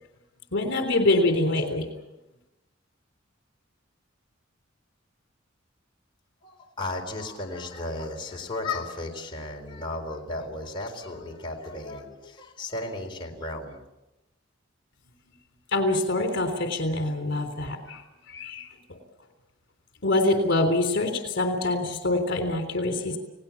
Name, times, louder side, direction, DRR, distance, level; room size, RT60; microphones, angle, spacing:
voice 1, 0.5-1.9 15.7-18.0 18.3-18.7 20.0-23.2, left 2 dB, 65° left, 6 dB, 3.6 m, -25 dB
voice 2, 6.4-13.9, left 2 dB, 25° left, 0 dB, 4.0 m, -35 dB
29.5 x 18.5 x 7.2 m, 0.98 s
head